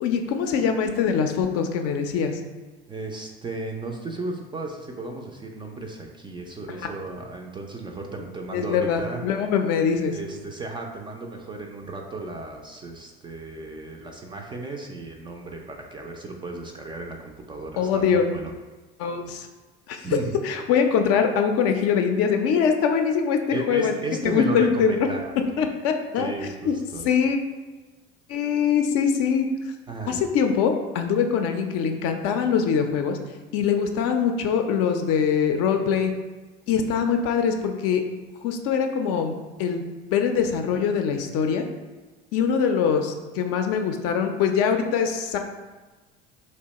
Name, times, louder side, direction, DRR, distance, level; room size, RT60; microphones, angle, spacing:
voice 1, 0.0-2.4 8.5-10.2 17.8-18.2 19.0-19.5 19.9-20.1 20.4-23.4 23.7-23.9 24.2-25.1 25.6-26.3 26.6-26.8 27.0-27.4 28.3-29.5 30.1-33.2 33.5-36.1 36.7-38.0 38.4-39.8 40.1-41.7 42.3-45.4, left 7 dB, 55° left, 5 dB, 0.5 m, -23 dB
voice 2, 2.9-9.2 10.1-18.5 20.0-20.4 23.5-25.3 26.2-27.1 29.9-30.3, right 2 dB, 15° right, 1 dB, 0.3 m, -34 dB
2.8 x 2.1 x 4.0 m, 1.3 s
hypercardioid pair, 80°, 29 cm